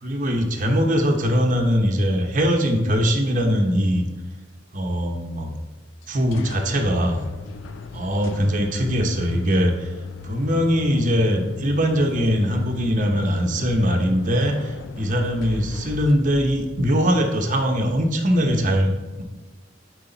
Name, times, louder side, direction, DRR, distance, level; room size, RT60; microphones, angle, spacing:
voice 1, 0.0-4.0 4.7-5.5 6.1-7.3 7.9-9.9 10.2-19.2, equal, 45° right, 3 dB, 0.9 m, -21 dB
sound 1, 6.0-17.7, left 4 dB, 85° left, 0.5 m, -37 dB
8.1 x 4.9 x 3.9 m, 1.2 s
head